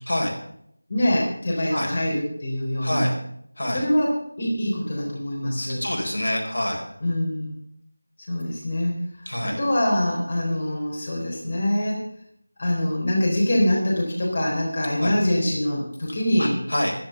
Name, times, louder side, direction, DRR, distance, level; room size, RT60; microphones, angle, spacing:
voice 1, 0.9-3.1 3.7-5.8 7.0-7.5 8.3-12.0 12.6-16.6, left 1 dB, 30° left, -3 dB, 3.9 m, -24 dB
voice 2, 2.8-3.1 3.6-3.8 5.6-6.8 9.3-9.6 15.0-15.1 16.4-16.9, left 1 dB, 70° left, 1 dB, 4.5 m, -26 dB
11.0 x 10.5 x 6.8 m, 0.70 s
figure-of-eight pair, 175°, 0 cm